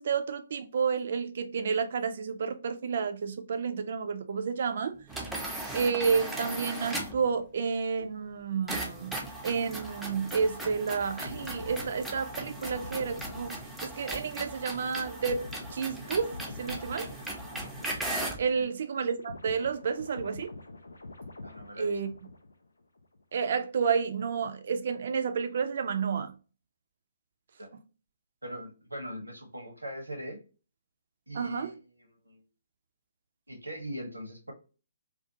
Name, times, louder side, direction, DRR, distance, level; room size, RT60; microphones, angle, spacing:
voice 1, 0.0-4.9 5.7-13.6 13.8-16.3 16.6-17.1 18.4-20.5 21.8-22.1 23.3-26.3 31.3-31.7, right 6 dB, 55° right, 0.4 m, -30 dB
sound 1, 5.1-7.3 8.7-18.5, right 1 dB, 5° right, 0.5 m, -38 dB
sound 2, 11.2-18.7 18.9-22.7 23.0-23.2, left 2 dB, 75° left, 0.3 m, -45 dB
voice 2, 21.4-22.0 27.6-27.7 28.4-30.4 31.3-32.4 33.5-34.5, equal, 90° right, 0.8 m, -41 dB
2.5 x 2.3 x 2.6 m
figure-of-eight pair, 130°, 0 cm